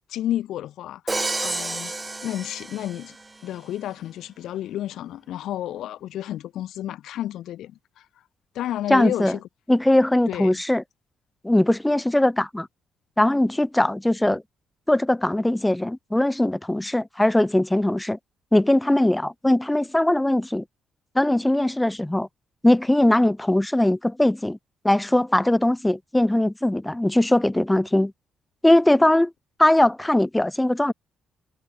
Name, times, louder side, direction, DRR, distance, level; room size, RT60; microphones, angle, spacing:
voice 1, 0.1-1.9 2.2-3.2 3.4-8.0 8.5-9.4 10.3-10.6, left 12 dB, 80° left, 2.5 m, -31 dB
Crash cymbal, 1.1-3.3, right 2 dB, 20° right, 0.9 m, -30 dB
voice 2, 8.9-9.4 9.7-10.8 11.4-12.7 13.2-14.4 14.9-18.2 18.5-20.6 21.1-22.3 22.6-24.6 24.8-28.1 28.6-29.3 29.6-30.9, left 1 dB, 10° left, 1.3 m, -20 dB
cardioid pair, 90°, 0 cm